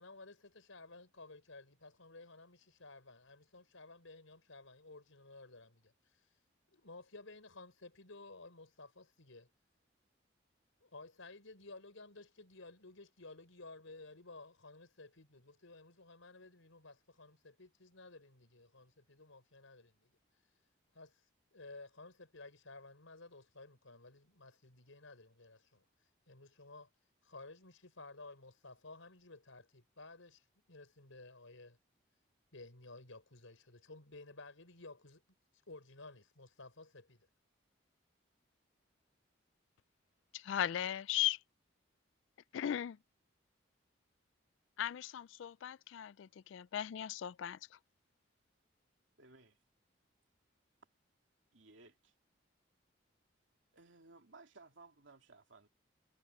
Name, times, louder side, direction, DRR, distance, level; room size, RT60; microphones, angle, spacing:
voice 1, 0.0-6.4 6.7-9.5 10.8-20.1 20.9-25.8 26.3-26.9 27.2-31.8 32.5-35.2 35.7-37.2, left 3 dB, 90° left, 5.2 m, -55 dB
voice 2, 40.3-41.4 42.5-43.0 44.8-47.8, left 11 dB, 70° left, 0.3 m, -37 dB
voice 3, 49.2-49.6 51.5-52.1 53.7-55.7, right 3 dB, 70° right, 2.5 m, -59 dB
head